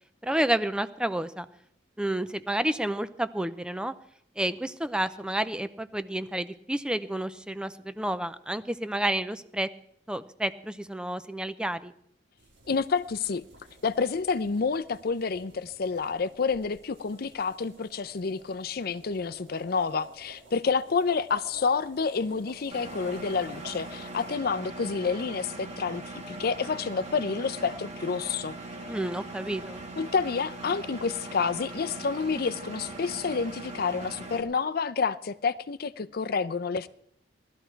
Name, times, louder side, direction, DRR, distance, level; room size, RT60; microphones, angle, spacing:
voice 1, 0.2-1.5 2.0-3.9 4.4-9.7 10.1-11.9 28.9-29.8, right 1 dB, 5° right, 12 dB, 0.5 m, -30 dB
sound 1, 12.4-24.4, right 2 dB, 85° right, 5.0 m, -52 dB
voice 2, 12.7-13.4 13.8-28.6 30.0-36.9, left 5 dB, 55° left, 13 dB, 0.5 m, -29 dB
Engine, 22.7-34.4, right 2 dB, 40° right, 1.9 m, -40 dB
18.5 x 12.5 x 4.5 m, 0.69 s
head